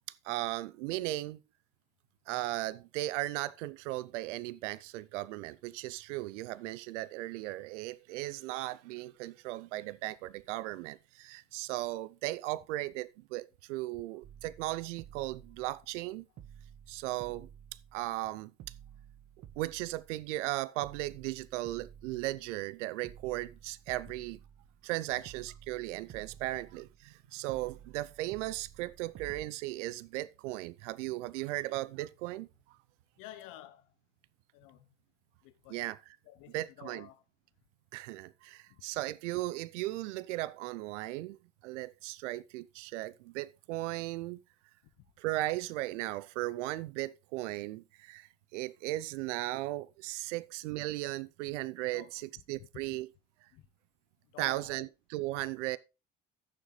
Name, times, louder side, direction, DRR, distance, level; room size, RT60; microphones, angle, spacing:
voice 1, 0.2-1.4 2.3-16.3 16.9-17.5 17.9-18.5 19.6-24.4 24.8-32.5 35.7-36.0 36.5-37.1 37.9-44.4 45.2-53.1 54.4-55.8, right 17 dB, 80° right, 0.5 m, -37 dB
sound 1, 14.2-16.1 16.4-18.3 18.6-20.4 20.8-22.7 23.0-24.9 25.2-27.2 27.5-29.4, right 9 dB, 50° right, 1.0 m, -53 dB
voice 2, 33.2-33.9 34.5-34.9 35.4-35.8 36.3-37.2 38.7-38.8 51.9-52.1 53.5-53.7 54.3-54.9, left 13 dB, 65° left, 0.9 m, -51 dB
14.5 x 6.5 x 3.1 m
hypercardioid pair, 70°, 35 cm